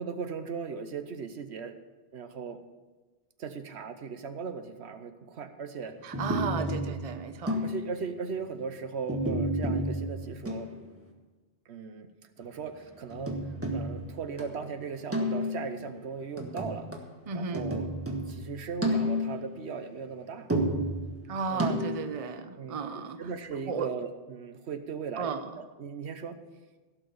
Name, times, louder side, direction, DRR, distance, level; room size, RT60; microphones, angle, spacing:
voice 1, 0.0-1.7 2.1-2.6 3.4-6.1 6.6-6.9 7.6-10.7 11.7-12.1 12.4-13.4 13.7-16.9 17.3-17.9 18.3-20.5 21.5-21.8 22.6-26.4, right 5 dB, 75° right, 9 dB, 1.1 m, -38 dB
voice 2, 6.0-7.6 17.3-17.7 21.3-23.2 23.7-23.9 25.2-25.5, right 5 dB, 35° right, 9 dB, 0.7 m, -34 dB
sound 1, 6.1-8.0 9.1-10.8 13.1-14.6 15.1-15.8 16.4-17.1 17.5-19.5 20.5-22.1, equal, 10° right, 1.5 m, -31 dB
16.0 x 5.9 x 7.0 m, 1.3 s
omnidirectional pair, 1.1 m